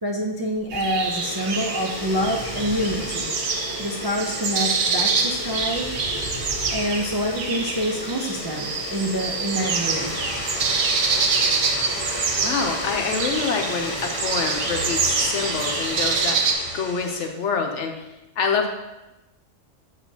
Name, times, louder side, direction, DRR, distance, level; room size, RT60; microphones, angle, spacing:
voice 1, 0.0-3.3 3.8-5.9 6.7-10.1, equal, 35° right, -1 dB, 0.3 m, -26 dB
sound 1, 0.7-17.3, left 1 dB, 20° left, 1.2 m, -32 dB
sound 2, 0.7-16.5, right 5 dB, 75° right, 1.1 m, -26 dB
voice 2, 12.0-18.0 18.4-18.7, left 5 dB, 70° left, 3 dB, 1.1 m, -26 dB
7.2 x 6.1 x 2.8 m, 0.97 s
omnidirectional pair, 1.3 m